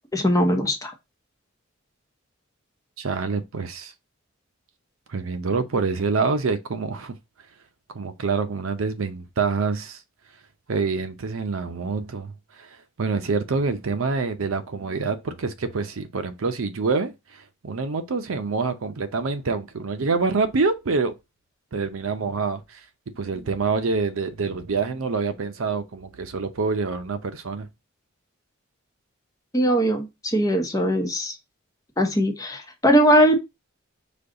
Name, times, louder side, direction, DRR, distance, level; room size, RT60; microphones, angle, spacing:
voice 1, 0.1-0.9 29.5-31.4 32.0-33.4, equal, 15° left, 0.8 m, -20 dB
voice 2, 3.0-3.9 5.1-7.2 7.9-10.0 10.7-21.1 21.7-22.8 23.1-27.7, right 4 dB, 80° right, 0.6 m, -26 dB
5.1 x 2.3 x 3.8 m
head